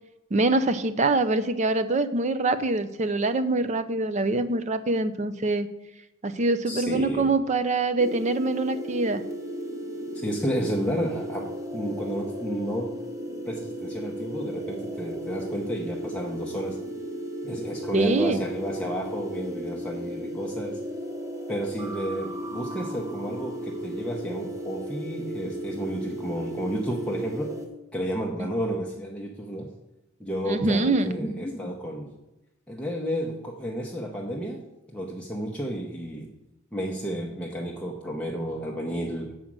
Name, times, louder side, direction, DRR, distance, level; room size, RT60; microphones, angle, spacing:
voice 1, 0.3-5.7 6.2-9.2 17.9-18.4 28.4-28.5 30.5-31.1, right 2 dB, 35° right, 11 dB, 0.5 m, -24 dB
voice 2, 6.7-7.3 10.1-12.9 13.5-16.8 17.4-20.8 21.5-27.6 27.9-29.7 30.2-32.1 32.7-34.6 34.9-36.3 36.7-39.3, equal, 5° left, -2 dB, 0.8 m, -31 dB
sound 1, 8.0-27.7, equal, 15° right, 1.1 m, -35 dB
7.4 x 5.0 x 7.3 m, 0.95 s
head